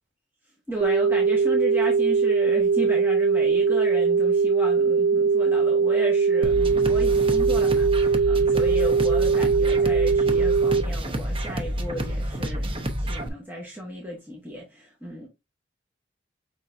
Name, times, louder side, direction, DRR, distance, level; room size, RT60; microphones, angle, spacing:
voice 1, 0.7-15.3, equal, 10° right, 1.3 m, -34 dB
sound 1, 0.8-10.8, right 5 dB, 55° right, 0.4 m, -21 dB
sound 2, 6.4-13.3, equal, 30° right, 0.8 m, -29 dB
5.6 x 3.8 x 2.4 m
head